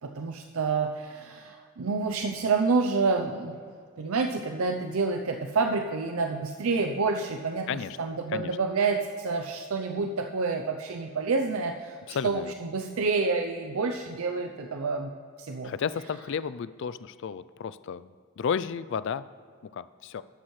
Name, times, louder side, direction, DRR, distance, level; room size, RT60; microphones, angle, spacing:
voice 1, 0.0-3.6 4.0-7.7 8.0-15.1 15.4-15.7, right 4 dB, 80° right, 4 dB, 0.6 m, -28 dB
voice 2, 12.1-12.5 15.6-19.2 19.7-20.2, left 6 dB, 60° left, 16 dB, 0.3 m, -32 dB
13.0 x 9.7 x 3.2 m, 2.2 s
head